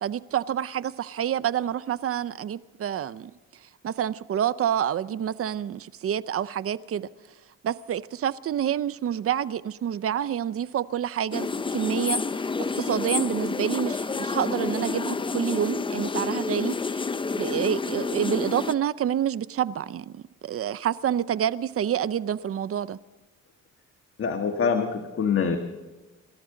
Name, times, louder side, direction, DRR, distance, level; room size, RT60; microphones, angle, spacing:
voice 1, 0.0-3.3 3.8-7.1 7.6-12.5 12.7-17.1 17.3-23.0, right 9 dB, 50° right, 0.6 m, -28 dB
sound 1, 11.3-18.7, left 4 dB, 15° left, 0.5 m, -29 dB
voice 2, 24.2-25.6, left 6 dB, 45° left, 1.6 m, -25 dB
28.0 x 13.5 x 3.9 m
cardioid pair, 90°, 30 cm